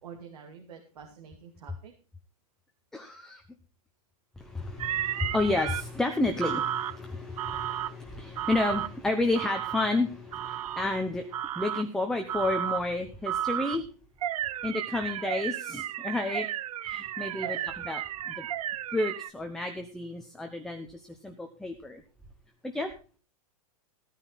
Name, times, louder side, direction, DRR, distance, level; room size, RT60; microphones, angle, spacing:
voice 1, 0.0-1.9 17.3-17.8, right 7 dB, 90° right, 2 dB, 2.6 m, -47 dB
voice 2, 2.9-3.4 4.4-13.9 14.6-16.5 16.8-17.6 17.8-18.5 18.9-22.0 22.6-22.9, left 2 dB, ahead, 4 dB, 0.8 m, -31 dB
sound 1, 4.8-5.8 6.4-7.0 7.4-7.9 8.4-8.9 9.3-9.9 10.3-10.9 11.3-11.8 12.3-12.8 13.3-13.8 14.2-19.3, right 11 dB, 70° right, 0.7 m, -33 dB
15.5 x 9.7 x 4.1 m, 0.36 s
hypercardioid pair, 155°, 19 cm